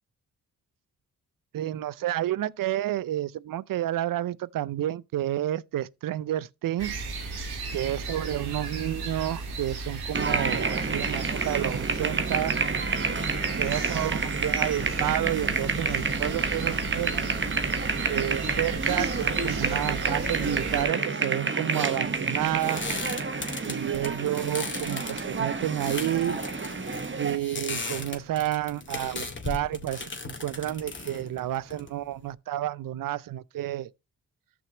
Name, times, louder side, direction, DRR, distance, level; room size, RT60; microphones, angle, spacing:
voice 1, 1.5-6.9 7.7-12.5 13.6-17.3 18.1-22.9 23.6-26.4 27.2-33.9, right 13 dB, 60° right, 0.6 m, -30 dB
sound 1, 6.8-20.8, right 3 dB, 80° right, 2.0 m, -35 dB
sound 2, 10.1-27.4, right 4 dB, 30° right, 1.2 m, -29 dB
sound 3, 21.9-32.3, left 3 dB, 30° left, 2.1 m, -37 dB
13.5 x 6.1 x 2.9 m
supercardioid pair, 45°, 38 cm